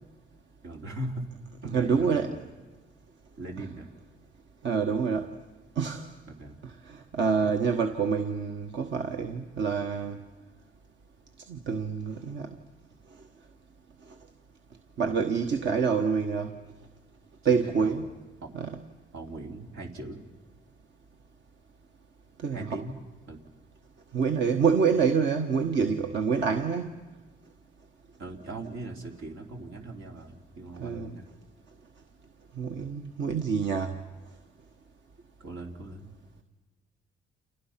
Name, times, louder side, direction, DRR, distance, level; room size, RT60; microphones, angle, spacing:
voice 1, 0.6-1.3 1.6-2.5 3.4-3.9 6.3-6.6 17.4-18.1 18.4-18.5 19.1-20.2 22.5-23.0 23.3-23.4 28.2-31.3 35.4-36.1, right 1 dB, 85° right, 3.4 m, -40 dB
voice 2, 1.6-2.4 4.6-5.3 5.8-6.1 6.6-10.2 11.5-12.5 15.0-16.5 17.4-18.1 18.5-18.8 22.4-22.8 24.1-26.9 30.8-31.1 32.6-34.0, right 6 dB, 65° right, 1.3 m, -27 dB
30.0 x 28.5 x 5.9 m
cardioid pair, 90°, 20 cm